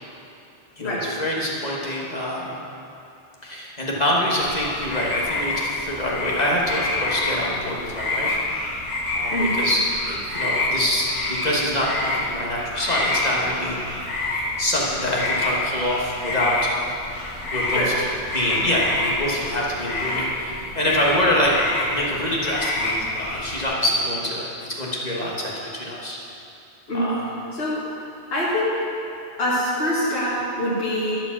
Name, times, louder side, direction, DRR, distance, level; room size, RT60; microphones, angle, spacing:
voice 1, 0.8-2.6 3.4-8.4 9.1-13.8 14.6-16.7 17.5-18.1 18.3-21.5 21.9-26.2 26.9-27.3, left 1 dB, 35° left, -4 dB, 1.4 m, -25 dB
sound 1, 4.4-23.6, left 2 dB, 90° left, 1.6 m, -27 dB
voice 2, 27.5-27.8 28.3-28.8 29.4-31.2, equal, 60° left, -9 dB, 1.9 m, -24 dB
11.0 x 4.9 x 7.2 m, 2.9 s
omnidirectional pair, 1.2 m